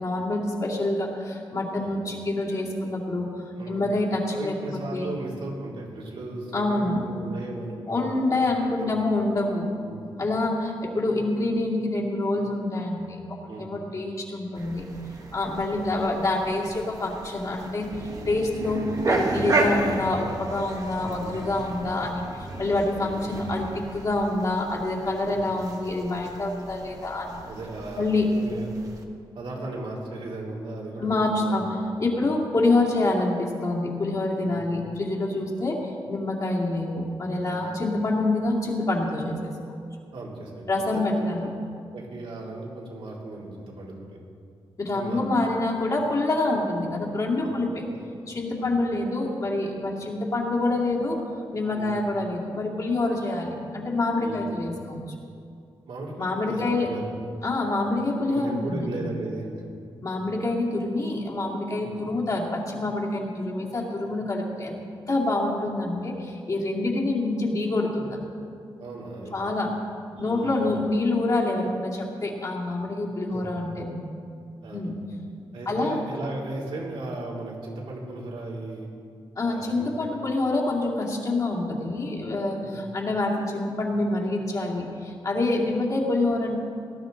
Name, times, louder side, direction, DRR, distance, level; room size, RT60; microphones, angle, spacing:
voice 1, 0.0-3.3 3.7-4.5 4.9-5.2 6.5-7.1 7.9-9.7 10.2-14.8 15.3-18.8 19.1-27.4 28.0-28.3 31.0-31.6 32.0-35.8 36.1-39.5 40.7-41.5 44.8-47.8 48.3-51.2 51.5-55.0 56.2-56.9 57.4-58.9 60.0-68.2 69.3-69.7 70.2-73.9 74.7-74.9 75.7-76.0 79.4-86.6, left 2 dB, 40° left, -4 dB, 2.4 m, -26 dB
voice 2, 3.6-3.9 4.3-8.3 8.8-9.1 9.7-10.1 13.5-13.7 15.7-15.9 20.9-21.4 23.0-23.2 25.2-25.5 27.4-28.7 29.3-31.9 32.1-32.3 34.4-34.6 37.5-37.7 40.1-41.3 41.9-43.9 44.9-45.2 47.4-47.6 48.6-48.7 51.7-52.0 54.2-54.4 55.9-57.1 58.3-59.6 61.7-62.0 68.8-69.3 70.2-70.6 73.3-73.5 74.6-74.9 75.5-78.9 79.5-80.1 82.6-82.8, right 2 dB, 80° right, -4 dB, 3.0 m, -37 dB
sound 1, 14.6-29.0, right 2 dB, 40° right, 1.3 m, -33 dB
18.5 x 12.5 x 3.9 m, 2.3 s
wide cardioid pair, 145°, 9 cm